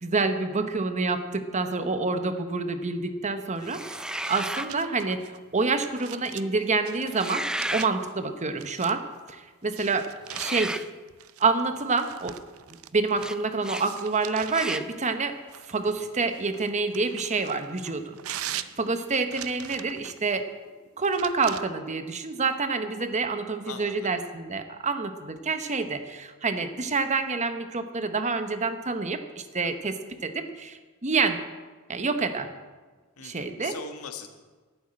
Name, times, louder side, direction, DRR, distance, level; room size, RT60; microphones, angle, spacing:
voice 1, 0.0-10.1 10.3-10.8 11.4-12.4 12.9-15.4 15.7-20.5 21.0-31.4 31.9-32.5 33.2-33.8, right 4 dB, 35° right, 9 dB, 1.0 m, -28 dB
voice 2, 3.6-4.0 10.4-10.8 15.8-16.1 23.7-24.1 33.2-34.3, left 5 dB, 80° left, 6 dB, 1.4 m, -42 dB
sound 1, 3.7-4.7 7.0-7.9 10.3-10.9 13.2-13.4 13.6-13.9 14.5-14.9, right 1 dB, 5° right, 0.3 m, -33 dB
sound 2, 4.1-8.1 8.6-9.2 9.7-13.4 13.7-14.8 15.5-20.2 21.0-21.6, right 11 dB, 65° right, 0.6 m, -42 dB
11.5 x 9.2 x 8.7 m, 1.4 s
head